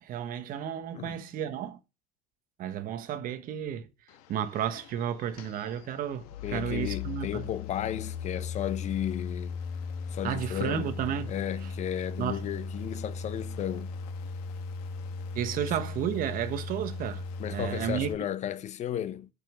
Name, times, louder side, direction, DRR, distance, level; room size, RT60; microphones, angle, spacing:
voice 1, 0.0-1.8 2.6-3.9 4.3-7.5 10.2-11.3 12.2-12.5 15.3-17.2 17.5-18.1, right 9 dB, 50° right, 1.2 m, -32 dB
sound 1, 4.1-18.1, left 5 dB, 85° left, 1.5 m, -38 dB
voice 2, 6.4-9.6 10.1-10.9 11.3-13.9 15.6-15.7 17.4-19.3, left 11 dB, 40° left, 0.6 m, -34 dB
6.4 x 5.6 x 5.9 m
supercardioid pair, 120°, 19 cm